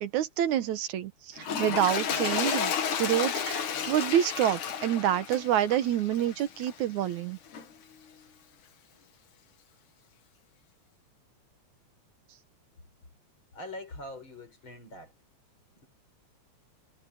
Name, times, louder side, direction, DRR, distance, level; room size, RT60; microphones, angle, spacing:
voice 1, 0.0-7.4, right 11 dB, 80° right, 2.5 m, -28 dB
Toilet flush, 1.4-6.8 7.5-7.6, left 7 dB, 85° left, 3.7 m, -32 dB
voice 2, 13.5-15.1 15.8-15.9, left 1 dB, 40° left, 6.0 m, -43 dB
omnidirectional pair, 3.4 m